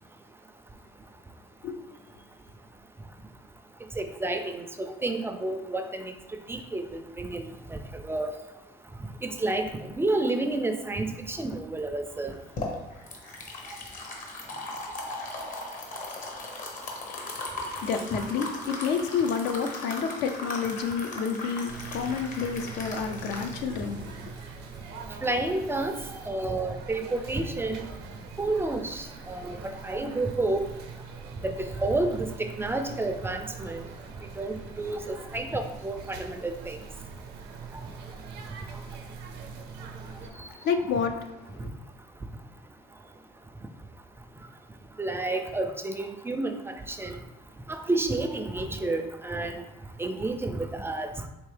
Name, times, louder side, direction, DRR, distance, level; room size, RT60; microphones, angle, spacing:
voice 1, 4.0-6.1 6.5-6.8 7.2-7.4 7.7-8.3 9.2-12.3 25.2-26.0 26.2-27.9 28.4-30.7 31.4-33.8 34.4-36.8 41.6-41.7 45.0-47.2 47.7-49.6 50.0-51.1, right 2 dB, 15° right, 6 dB, 0.3 m, -30 dB
sound 1, 12.2-25.2, left 2 dB, 50° left, 0.9 m, -38 dB
voice 2, 17.2-24.3 40.1-41.7, left 6 dB, 80° left, 6 dB, 0.5 m, -30 dB
sound 2, 21.7-40.3, right 5 dB, 75° right, 0.6 m, -43 dB
4.3 x 3.0 x 3.2 m, 0.92 s
cardioid pair, 110°, 17 cm